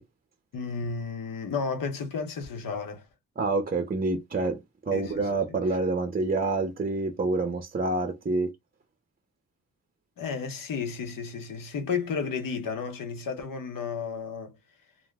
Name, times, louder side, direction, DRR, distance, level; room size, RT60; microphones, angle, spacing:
voice 1, 0.5-3.1 4.9-5.6 10.2-14.6, left 5 dB, 70° left, 0.9 m, -33 dB
voice 2, 3.4-4.6 4.9-8.5, right 3 dB, 25° right, 0.6 m, -27 dB
2.5 x 2.1 x 3.4 m
cardioid pair, 75°, 34 cm